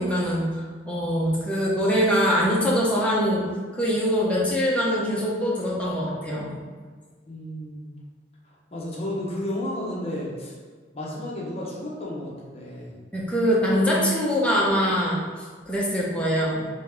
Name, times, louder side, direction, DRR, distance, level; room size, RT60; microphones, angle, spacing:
voice 1, 0.0-3.5 3.7-6.5 13.1-15.2 15.7-16.7, equal, 5° left, -6 dB, 0.9 m, -23 dB
voice 2, 7.3-7.9 8.7-10.5 10.9-12.9, left 1 dB, 35° left, -5 dB, 1.0 m, -32 dB
4.1 x 3.7 x 3.5 m, 1.5 s
head